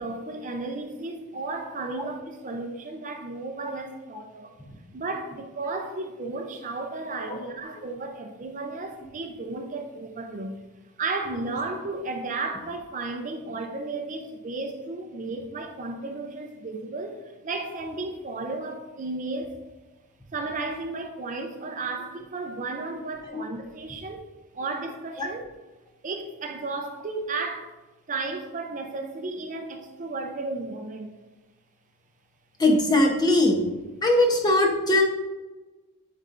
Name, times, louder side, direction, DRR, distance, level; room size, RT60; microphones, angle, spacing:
voice 1, 0.0-4.5 4.9-10.6 11.0-19.6 20.3-24.3 24.5-25.4 26.0-27.7 28.1-31.1, right 3 dB, 35° right, 0.5 m, -33 dB
voice 2, 32.6-33.6 34.0-35.0, left 1 dB, 20° left, 0.8 m, -21 dB
8.8 x 4.2 x 2.5 m
head